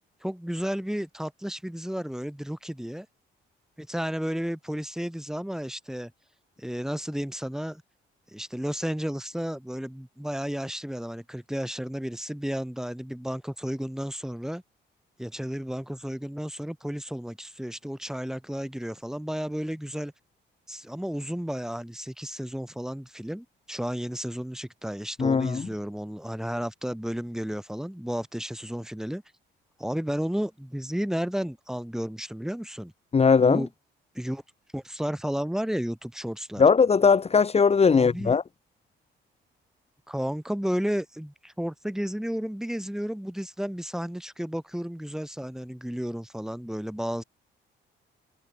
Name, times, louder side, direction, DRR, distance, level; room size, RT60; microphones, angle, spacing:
voice 1, 0.2-3.1 3.8-6.1 6.6-7.8 8.3-14.6 15.2-20.1 20.7-29.2 29.8-32.9 33.4-33.7 34.1-34.4 34.7-36.6 37.9-38.4 40.1-47.2, equal, ahead, 6.6 m, -32 dB
voice 2, 25.2-25.7 33.1-33.6 36.6-38.4, left 5 dB, 30° left, 1.3 m, -19 dB
cardioid pair, 90°, 20 cm